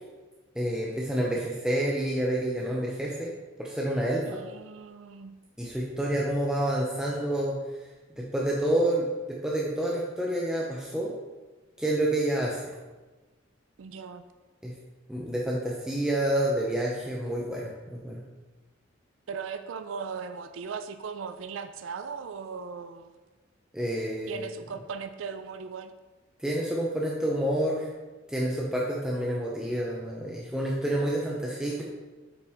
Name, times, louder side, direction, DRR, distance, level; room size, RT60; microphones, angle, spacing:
voice 1, 0.6-3.3 3.6-4.4 5.6-7.6 8.1-11.1 11.8-12.6 14.6-14.8 15.1-18.2 23.7-24.5 26.4-27.9 28.3-31.8, right 1 dB, 5° right, -4 dB, 0.7 m, -28 dB
voice 2, 4.3-5.4 13.8-14.2 19.3-23.1 24.3-25.9, right 6 dB, 85° right, 9 dB, 0.4 m, -38 dB
8.1 x 5.7 x 3.5 m, 1.3 s
head